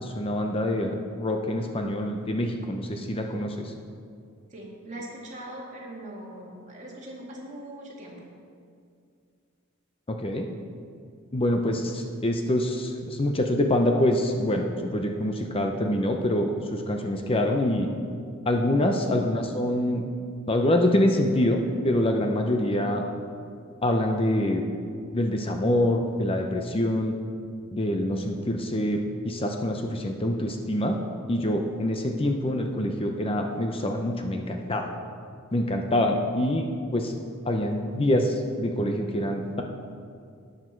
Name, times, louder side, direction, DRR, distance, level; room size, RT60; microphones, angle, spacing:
voice 1, 0.0-3.7 10.1-10.5 11.3-17.9 18.5-20.0 20.5-23.0 23.8-24.6 25.1-27.2 27.7-29.0 29.2-31.0 31.3-35.0 35.5-36.7 36.9-37.1 37.4-39.6, left 1 dB, 25° left, 3 dB, 0.7 m, -25 dB
voice 2, 4.5-8.2 22.9-23.0, right 1 dB, 35° right, -3 dB, 2.4 m, -41 dB
12.0 x 9.9 x 4.5 m, 2.3 s
head